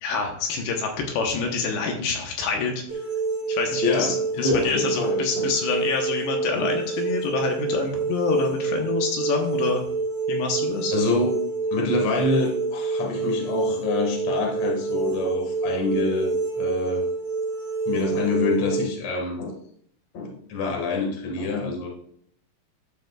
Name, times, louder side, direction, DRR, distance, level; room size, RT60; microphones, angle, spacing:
voice 1, 0.0-2.8 3.5-9.8 10.3-10.9, left 4 dB, 80° left, 2 dB, 3.1 m, -27 dB
sound 1, 2.9-18.8, right 4 dB, 45° right, 4.3 m, -27 dB
voice 2, 3.8-5.5 6.5-6.8 10.9-11.4 11.7-17.0 17.9-19.5 20.1-21.9, left 3 dB, 50° left, 0 dB, 2.4 m, -26 dB
12.0 x 6.9 x 2.4 m, 0.66 s
omnidirectional pair, 4.9 m